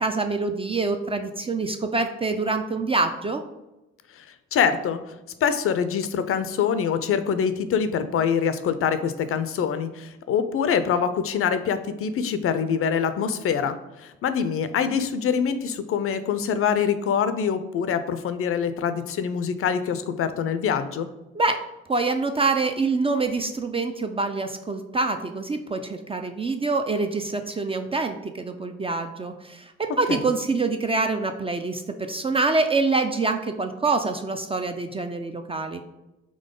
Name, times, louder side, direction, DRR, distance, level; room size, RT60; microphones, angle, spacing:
voice 1, 0.0-3.4 21.3-21.6 21.9-35.8, right 3 dB, 20° right, 6 dB, 0.3 m, -25 dB
voice 2, 4.5-5.0 5.4-21.1 30.1-30.3, left 7 dB, 45° left, 11 dB, 0.5 m, -25 dB
3.8 x 3.1 x 3.7 m, 0.98 s
hypercardioid pair, 50°, 32 cm